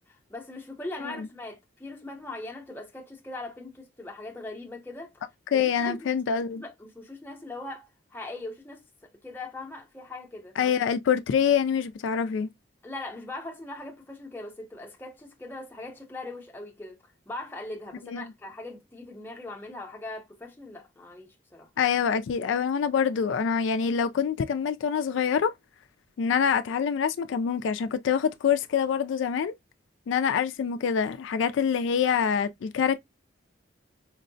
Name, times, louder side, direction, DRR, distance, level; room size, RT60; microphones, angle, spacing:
voice 1, 0.0-5.2 5.5-6.2 6.5-10.7 12.8-17.0 17.3-21.7, left 2 dB, 10° left, 0.6 m, -40 dB
voice 2, 5.5-6.6 10.6-12.5 18.1-18.3 21.8-25.5 26.2-29.5 30.1-33.0, left 7 dB, 70° left, 0.3 m, -25 dB
4.4 x 2.1 x 2.5 m
head